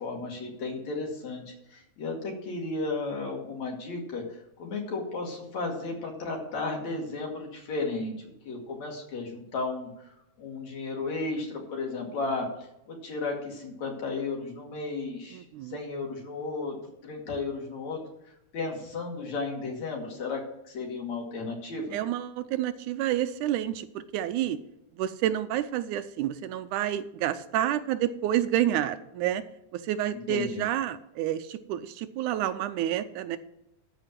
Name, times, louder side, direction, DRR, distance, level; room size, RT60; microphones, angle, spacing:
voice 1, 0.0-8.2 8.4-9.9 10.4-12.5 12.9-15.4 15.7-16.8 17.0-18.0 18.5-22.0 30.1-30.6, left 3 dB, 60° left, 1 dB, 3.4 m, -34 dB
voice 2, 15.3-15.8 21.9-23.9 24.1-24.6 25.0-29.4 29.7-33.4, right 12 dB, 80° right, 11 dB, 2.0 m, -29 dB
13.5 x 5.0 x 7.4 m, 0.84 s
omnidirectional pair, 3.6 m